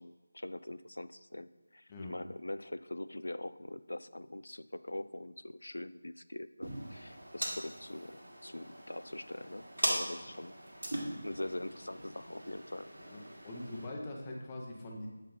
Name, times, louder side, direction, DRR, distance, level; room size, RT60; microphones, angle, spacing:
voice 1, 0.0-10.6 11.2-12.9, left 1 dB, 85° left, 14 dB, 0.3 m, -43 dB
sound 1, 6.6-13.9, right 1 dB, 85° right, 2.1 m, -40 dB
voice 2, 13.0-15.1, left 1 dB, 15° left, -1 dB, 0.7 m, -43 dB
7.5 x 3.6 x 3.9 m, 1.2 s
figure-of-eight pair, 170°, 0 cm